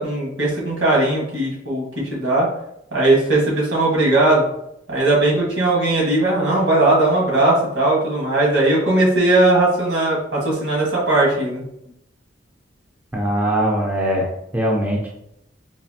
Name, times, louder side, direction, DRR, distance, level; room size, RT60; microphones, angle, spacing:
voice 1, 0.0-2.5 2.9-4.4 4.9-11.6, right 2 dB, 80° right, -4 dB, 1.4 m, -18 dB
voice 2, 13.1-15.1, right 1 dB, 10° right, -2 dB, 0.4 m, -21 dB
4.1 x 2.7 x 2.7 m, 0.78 s
head